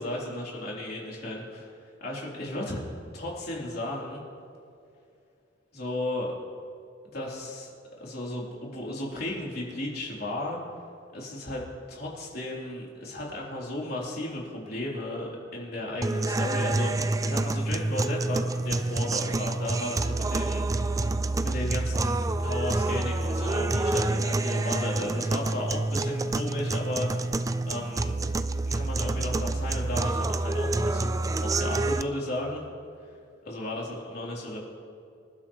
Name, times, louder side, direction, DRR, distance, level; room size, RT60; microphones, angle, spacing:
voice 1, 0.0-2.8 3.1-4.2 5.7-6.3 7.1-7.7 8.0-10.6 11.1-21.1 21.4-27.3 27.7-28.2 28.7-32.6 33.5-34.6, left 1 dB, 55° left, -4 dB, 3.5 m, -34 dB
sound 1, 16.0-32.0, right 2 dB, 15° right, 0.4 m, -28 dB
26.0 x 12.0 x 3.1 m, 2.4 s
head